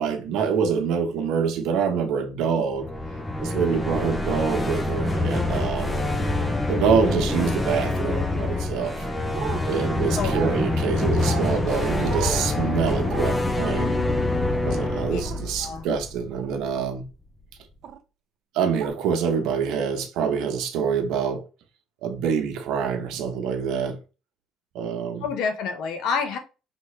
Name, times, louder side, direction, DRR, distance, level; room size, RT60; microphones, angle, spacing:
voice 1, 0.0-2.9 3.4-6.0 6.7-9.1 9.7-14.0 14.6-17.0 18.5-21.4 22.0-24.0 24.7-25.3, right 6 dB, 75° right, 1.1 m, -26 dB
sound 1, 2.7-16.7, left 2 dB, 10° left, 0.5 m, -26 dB
sound 2, 9.3-9.6 10.3-10.5 11.2-11.5 12.0-12.5 13.0-13.3 15.3-15.4 16.3-16.6 17.8-18.0 18.8-18.9, right 9 dB, 55° right, 0.5 m, -33 dB
voice 2, 25.2-26.4, left 5 dB, 70° left, 1.0 m, -28 dB
5.4 x 3.0 x 3.2 m
cardioid pair, 155°, 0 cm